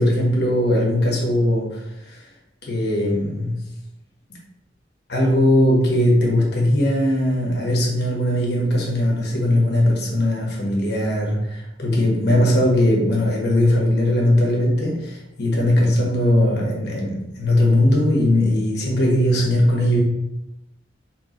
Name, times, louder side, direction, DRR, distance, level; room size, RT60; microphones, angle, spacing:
voice 1, 0.0-1.8 2.1-2.2 2.6-3.5 5.1-20.0, left 1 dB, 65° left, -2 dB, 1.3 m, -19 dB
3.4 x 3.2 x 3.8 m, 0.89 s
head